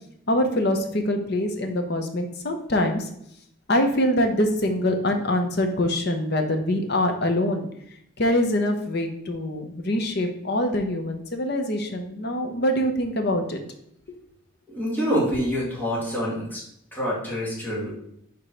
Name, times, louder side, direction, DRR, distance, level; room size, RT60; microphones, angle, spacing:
voice 1, 0.3-3.1 3.7-7.7 8.2-13.6, left 1 dB, 50° left, 5 dB, 0.8 m, -24 dB
voice 2, 14.7-16.6 16.9-17.9, equal, 10° left, -6 dB, 1.9 m, -26 dB
5.0 x 3.7 x 5.6 m, 0.74 s
head